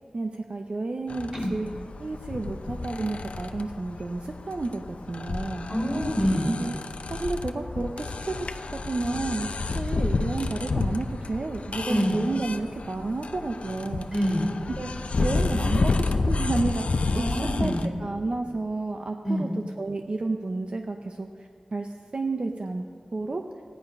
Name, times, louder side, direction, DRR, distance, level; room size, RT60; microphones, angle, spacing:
voice 1, 0.1-1.7 2.0-5.7 6.4-6.7 7.1-9.5 9.7-14.1 14.7-14.9 15.2-17.7 18.0-19.5 19.8-22.8 23.1-23.4, right 2 dB, 55° right, 4 dB, 0.7 m, -31 dB
sound 1, 1.1-17.9, left 3 dB, 70° left, 0.6 m, -30 dB
voice 2, 5.7-6.5 11.8-12.2 14.1-14.5 17.1-17.8 19.2-19.5, equal, 20° right, 1 dB, 3.6 m, -26 dB
15.0 x 10.0 x 5.3 m, 2.2 s
wide cardioid pair, 55°, 2 cm